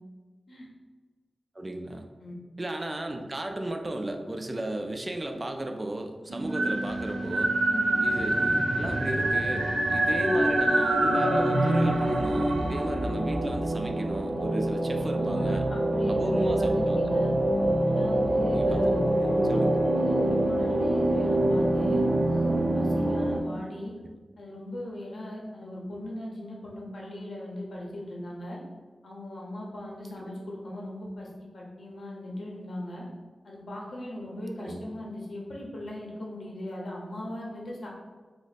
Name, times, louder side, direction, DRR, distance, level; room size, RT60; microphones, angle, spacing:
voice 1, 1.6-2.1 2.6-7.5 8.0-15.6 16.1-17.0 18.5-19.8 30.2-30.3 34.6-34.8, right 1 dB, 30° right, 4 dB, 0.3 m, -34 dB
sound 1, 6.3-23.4, right 1 dB, 80° right, 0.5 m, -25 dB
voice 2, 15.2-17.3 17.9-19.6 19.9-23.9 24.4-28.6 29.0-33.0 33.4-37.9, left 1 dB, 85° left, -3 dB, 0.8 m, -38 dB
3.0 x 2.0 x 4.1 m, 1.4 s
wide cardioid pair, 115°, 0 cm